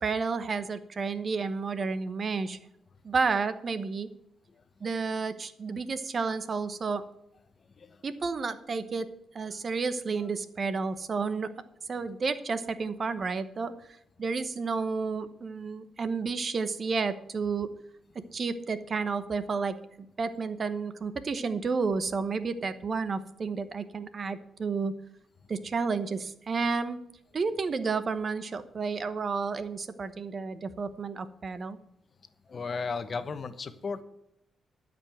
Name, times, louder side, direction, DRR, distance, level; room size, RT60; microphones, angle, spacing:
voice 1, 0.0-2.6 3.0-4.1 4.8-7.0 8.0-9.1 9.3-11.5 11.9-13.7 14.2-17.7 18.3-19.8 20.2-24.9 25.5-27.0 27.3-31.8, right 4 dB, 50° right, 12 dB, 1.0 m, -31 dB
voice 2, 32.5-34.0, left 4 dB, 50° left, 11 dB, 1.0 m, -34 dB
12.5 x 5.3 x 7.8 m, 0.79 s
cardioid pair, 65°, 0 cm